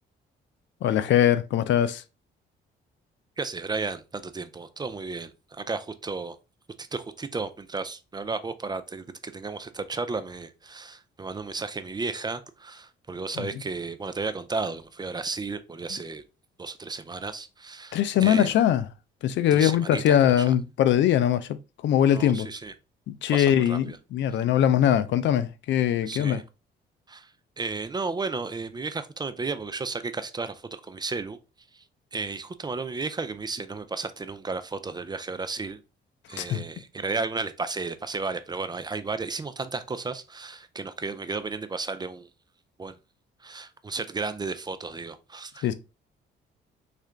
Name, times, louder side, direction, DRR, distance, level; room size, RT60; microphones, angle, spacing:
voice 1, 0.8-2.0 17.9-18.9 19.2-21.6 21.8-22.5 23.1-26.4 36.4-36.6 45.6-45.7, left 10 dB, 70° left, 0.4 m, -22 dB
voice 2, 3.4-6.4 6.8-16.2 16.6-18.5 19.5-20.5 22.1-22.7 23.3-24.0 24.3-24.4 26.1-26.4 27.1-27.3 27.6-31.4 31.7-31.8 32.1-35.8 36.3-42.3 42.8-42.9 43.4-45.7, right 4 dB, 20° right, 0.4 m, -33 dB
3.7 x 2.5 x 3.2 m
cardioid pair, 90°, 20 cm